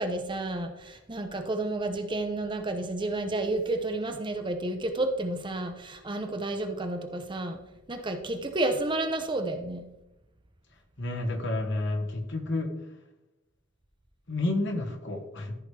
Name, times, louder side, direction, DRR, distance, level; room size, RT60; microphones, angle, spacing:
voice 1, 0.0-7.6 7.9-9.8, right 2 dB, 25° right, 6 dB, 0.7 m, -31 dB
voice 2, 11.0-12.7 14.3-15.5, left 2 dB, 60° left, 4 dB, 1.3 m, -30 dB
14.0 x 4.9 x 3.4 m, 0.94 s
head